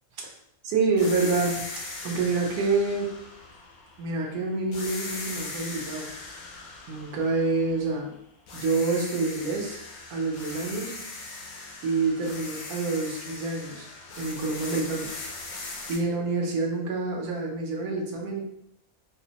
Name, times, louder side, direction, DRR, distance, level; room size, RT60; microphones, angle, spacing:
voice 1, 0.6-1.7 2.0-3.1 4.0-6.1 6.9-8.1 8.5-9.8 10.1-11.0 11.8-13.9 14.2-15.1 15.9-18.4, right 3 dB, 85° right, 0 dB, 1.2 m, -27 dB
sound 1, 1.0-4.3 4.7-8.1 8.5-16.0, left 3 dB, 80° left, 1.2 m, -39 dB
4.1 x 2.1 x 2.8 m, 0.74 s
omnidirectional pair, 1.5 m